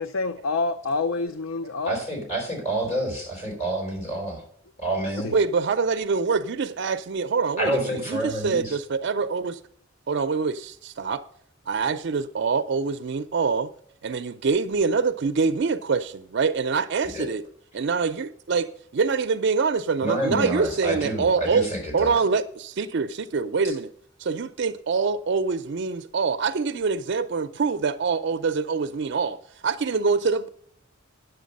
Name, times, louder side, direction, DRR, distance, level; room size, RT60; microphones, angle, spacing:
voice 1, 0.0-2.0 5.2-5.3, left 3 dB, 85° left, 0.5 m, -27 dB
voice 2, 1.9-4.4 4.8-5.3 7.6-8.8 17.1-17.3 20.0-22.1, right 1 dB, 35° left, 3.9 m, -28 dB
voice 3, 5.3-9.6 10.1-11.2 11.7-13.7 14.0-17.5 17.7-18.7 18.9-21.7 21.9-23.9 24.2-29.4 29.6-30.5, right 4 dB, 60° right, 0.5 m, -25 dB
10.0 x 7.8 x 5.2 m
head